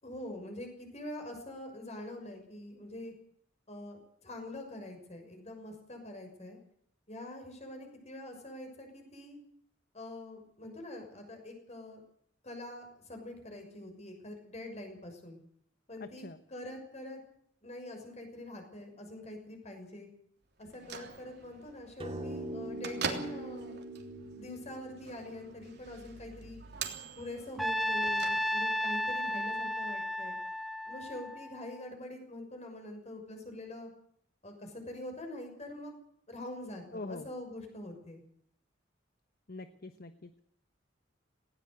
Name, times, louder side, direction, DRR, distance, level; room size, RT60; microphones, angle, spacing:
voice 1, 0.0-3.1 3.7-6.6 7.1-9.4 9.9-12.0 12.4-15.4 15.9-16.2 16.5-17.2 17.6-20.1 20.6-24.0 24.3-26.6 27.2-30.4 30.9-33.9 34.4-35.9 36.3-38.2, left 1 dB, 35° left, 4 dB, 6.4 m, -44 dB
voice 2, 16.0-16.4 36.9-37.3 39.5-40.3, left 2 dB, 50° left, 10 dB, 1.1 m, -43 dB
Bell / Microwave oven, 20.6-28.9, right 5 dB, 60° right, 3.2 m, -44 dB
sound 1, 22.0-26.5, right 1 dB, 30° right, 2.6 m, -43 dB
Trumpet, 27.6-31.8, left 1 dB, ahead, 1.3 m, -33 dB
19.5 x 17.5 x 8.0 m, 0.67 s
head